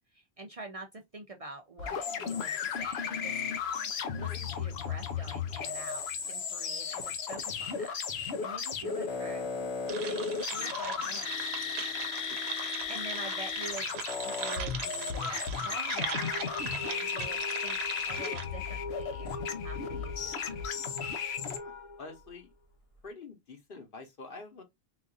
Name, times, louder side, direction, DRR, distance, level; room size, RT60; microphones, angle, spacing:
voice 1, 0.1-3.4 4.1-9.5 9.9-11.3 12.9-17.8 18.1-19.4 19.6-20.6, right 2 dB, 45° right, 0.5 m, -46 dB
sound 1, 1.8-21.6, left 6 dB, 85° left, 1.0 m, -35 dB
sound 2, 9.9-18.4, right 6 dB, 80° right, 0.9 m, -40 dB
sound 3, 16.1-23.0, left 3 dB, 35° left, 1.0 m, -43 dB
voice 2, 21.4-22.5 23.0-24.6, left 3 dB, 60° left, 1.2 m, -47 dB
4.0 x 2.5 x 2.4 m
omnidirectional pair, 1.1 m